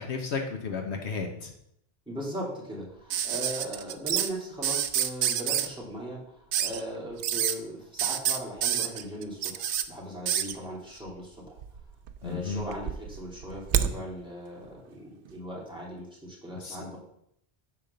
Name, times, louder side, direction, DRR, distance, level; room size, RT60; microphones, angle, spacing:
voice 1, 0.0-1.5 12.2-12.6 16.6-16.8, left 5 dB, 75° left, 3 dB, 1.3 m, -33 dB
voice 2, 2.1-11.6 12.2-17.0, equal, 5° right, -5 dB, 2.7 m, -38 dB
sound 1, 3.1-4.3 4.6-5.7 6.5-6.8 7.2-7.5 8.0-9.8 10.3-10.5 11.6-12.2 12.5-13.9 15.3-15.4, right 9 dB, 90° right, 0.9 m, -28 dB
8.6 x 3.8 x 6.6 m, 0.73 s
omnidirectional pair, 1.1 m